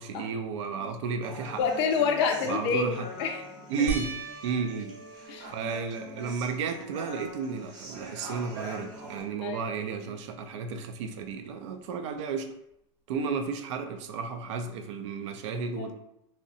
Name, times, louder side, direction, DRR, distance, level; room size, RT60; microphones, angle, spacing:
voice 1, 0.0-1.6 2.4-3.1 3.7-4.1 4.4-4.9 5.3-12.5 13.1-15.9, right 5 dB, 70° right, 6 dB, 0.4 m, -33 dB
Human voice, 1.2-9.2, equal, 50° right, 0.8 m, -43 dB
voice 2, 1.6-3.4 5.3-5.5 9.4-9.6 15.5-15.9, left 5 dB, 60° left, 4 dB, 0.4 m, -28 dB
sound 1, 3.9-6.5 7.1-7.7 8.0-8.1 11.3-11.4, right 2 dB, 10° right, 0.5 m, -41 dB
2.7 x 2.1 x 2.7 m, 0.80 s
supercardioid pair, 125°, 16 cm